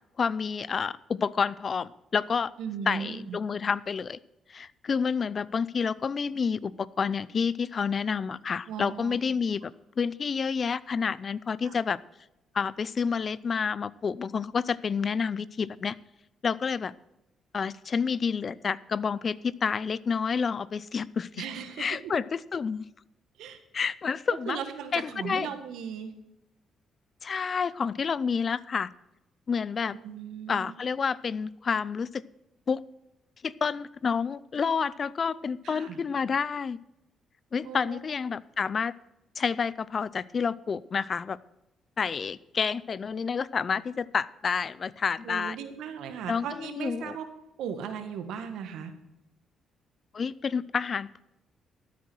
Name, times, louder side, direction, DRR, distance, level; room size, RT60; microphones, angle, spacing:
voice 1, 0.2-2.5 2.9-4.2 4.5-12.0 12.5-16.0 16.4-16.9 17.5-21.4 21.8-22.9 23.7-24.6 24.9-25.5 27.2-28.9 29.5-30.0 30.5-32.2 32.7-32.8 33.4-36.8 37.5-38.9 39.4-41.4 42.0-45.6 46.3-47.2 50.1-51.2, left 6 dB, 45° left, 20 dB, 0.5 m, -29 dB
voice 2, 2.6-3.4 8.7-9.2 11.6-11.7 21.4-22.1 23.4-23.6 24.5-26.1 30.0-30.7 35.6-36.0 37.6-38.0 45.2-47.3 47.6-48.9, right 7 dB, 85° right, 8 dB, 1.7 m, -37 dB
13.5 x 8.5 x 6.3 m, 0.92 s
cardioid pair, 90°, 0 cm